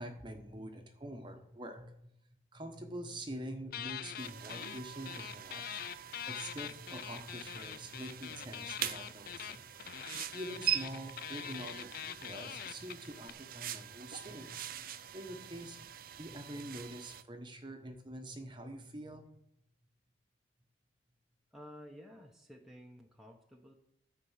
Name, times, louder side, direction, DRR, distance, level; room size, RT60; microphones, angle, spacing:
voice 1, 0.0-2.1 2.5-5.8 6.0-9.6 10.3-15.9 16.2-19.3, right 1 dB, 25° right, 5 dB, 1.1 m, -45 dB
sound 1, 3.7-4.8 5.1-13.3, left 10 dB, 50° left, 0.4 m, -44 dB
sound 2, 4.2-17.2, right 11 dB, 45° right, 0.5 m, -43 dB
voice 2, 21.5-23.7, equal, ahead, 0 dB, 1.0 m, -53 dB
13.5 x 5.2 x 7.3 m, 0.78 s
head